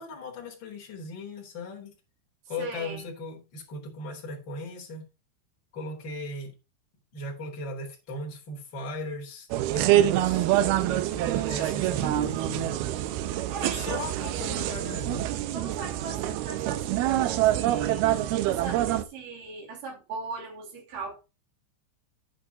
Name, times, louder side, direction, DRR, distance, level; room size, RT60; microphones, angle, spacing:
voice 1, 0.0-1.9 2.5-5.0 5.7-6.5 7.1-10.4 10.8-12.8 13.6-15.3, left 2 dB, 25° left, 3.6 m, -37 dB
voice 2, 2.6-3.1 13.3-14.6 15.5-18.1 18.4-21.2, right 5 dB, 50° right, 4.2 m, -39 dB
sound 1, 9.5-19.0, right 13 dB, 80° right, 2.3 m, -26 dB
11.0 x 9.9 x 2.9 m
omnidirectional pair, 5.3 m